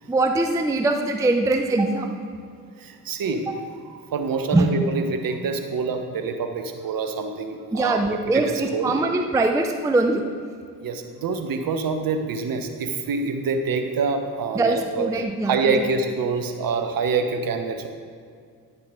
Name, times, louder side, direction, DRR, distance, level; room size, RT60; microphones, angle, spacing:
voice 1, 0.1-2.1 4.5-4.7 7.7-10.2 14.5-15.9, right 2 dB, 5° right, 5 dB, 0.5 m, -22 dB
voice 2, 2.8-3.5 3.7-8.0 8.3-8.4 8.7-8.9 10.8-15.1 15.5-17.9, right 4 dB, 45° right, 6 dB, 1.0 m, -26 dB
9.5 x 6.8 x 3.7 m, 2.2 s
figure-of-eight pair, 45°, 49 cm